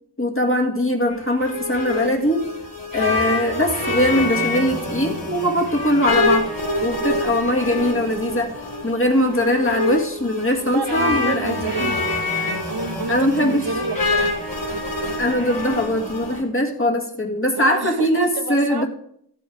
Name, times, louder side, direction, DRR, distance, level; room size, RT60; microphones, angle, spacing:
voice 1, 0.2-2.5 2.9-6.5 6.8-12.0 13.1-13.6 15.2-18.9, left 1 dB, 30° left, 3 dB, 2.0 m, -21 dB
sound 1, 1.1-16.4, left 2 dB, 50° left, 3.4 m, -26 dB
voice 2, 10.6-12.0 12.7-14.3 17.5-18.9, right 4 dB, 70° right, 9 dB, 1.0 m, -29 dB
14.5 x 7.7 x 5.1 m, 0.71 s
wide cardioid pair, 60°, 40 cm